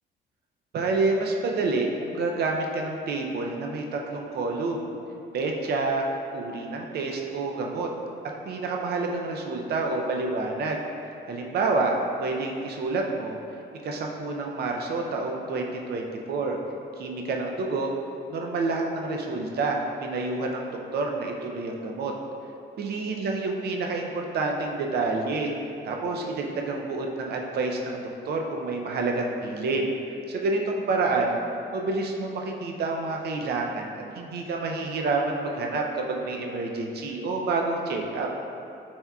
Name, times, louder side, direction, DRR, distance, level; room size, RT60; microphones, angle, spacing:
voice 1, 0.7-4.9 5.3-6.0 6.3-7.9 8.5-10.8 11.3-13.4 13.8-16.6 17.0-17.9 18.3-22.1 22.8-25.5 25.8-30.0 30.3-31.4 31.7-38.3, right 3 dB, 55° right, 1 dB, 0.5 m, -28 dB
4.2 x 3.5 x 2.3 m, 2.7 s
cardioid pair, 90°, 20 cm